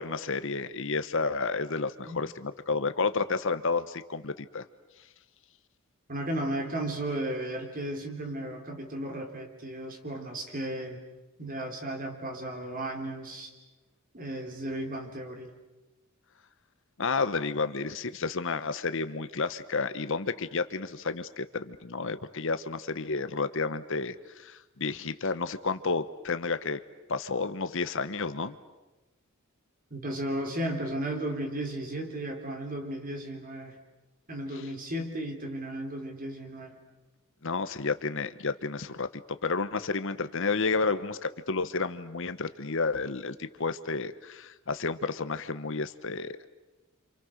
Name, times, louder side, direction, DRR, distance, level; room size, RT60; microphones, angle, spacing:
voice 1, 0.0-4.7 17.0-26.8 27.1-28.6 34.6-34.7 37.4-46.5, left 4 dB, 65° left, 11 dB, 1.1 m, -31 dB
voice 2, 6.1-11.0 11.4-13.5 14.1-15.5 29.9-33.8 34.3-36.7, right 1 dB, 40° right, 3 dB, 3.8 m, -34 dB
29.0 x 27.0 x 6.6 m, 1.1 s
head